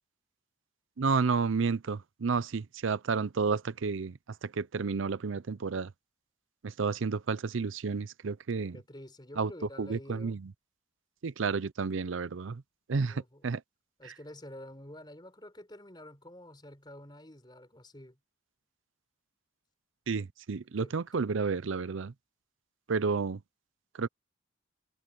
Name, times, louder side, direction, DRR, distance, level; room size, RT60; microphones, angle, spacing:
voice 1, 1.0-5.9 6.6-8.8 9.4-9.5 9.8-10.5 11.2-12.6 12.9-13.6 14.0-14.1 20.1-22.1 22.9-23.4 23.9-24.1, right 4 dB, 75° right, 0.6 m, -31 dB
voice 2, 8.7-10.4 13.1-13.5 14.0-18.2 20.8-21.2, left 1 dB, 20° left, 4.3 m, -48 dB
head